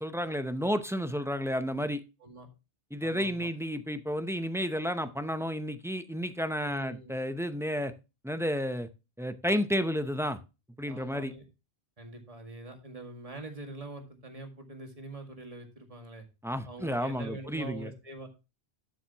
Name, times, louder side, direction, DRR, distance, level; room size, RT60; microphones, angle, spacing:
voice 1, 0.0-2.0 2.9-7.9 8.2-8.9 9.2-10.4 10.8-11.3 16.4-17.9, equal, 5° right, 9 dB, 0.5 m, -31 dB
voice 2, 3.0-3.5 6.6-7.1 10.9-11.5 12.0-16.3 16.6-18.3, right 2 dB, 35° right, 4 dB, 2.1 m, -44 dB
12.0 x 7.3 x 2.9 m, 0.28 s
omnidirectional pair, 1.1 m